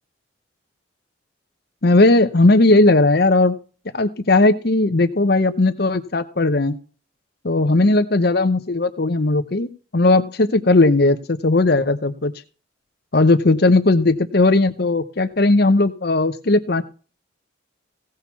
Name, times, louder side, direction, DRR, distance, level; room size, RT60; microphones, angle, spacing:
voice 1, 1.8-3.6 3.9-6.8 7.4-12.3 13.1-16.8, left 2 dB, 55° left, 10 dB, 0.8 m, -17 dB
17.0 x 6.6 x 5.8 m, 0.38 s
head